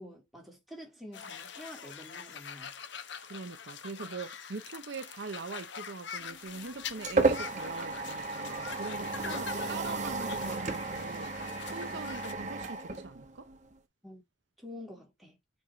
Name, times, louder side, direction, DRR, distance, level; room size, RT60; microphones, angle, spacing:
voice 1, 0.0-2.7 9.2-9.4 11.9-12.0 14.0-14.2 14.6-15.4, left 1 dB, ahead, 3.2 m, -47 dB
sound 1, 1.1-12.3, left 6 dB, 60° left, 1.0 m, -44 dB
voice 2, 3.2-11.4 11.7-13.5, right 4 dB, 60° right, 0.7 m, -42 dB
sound 2, 6.3-13.7, right 3 dB, 35° right, 1.1 m, -33 dB
6.4 x 5.3 x 3.2 m
head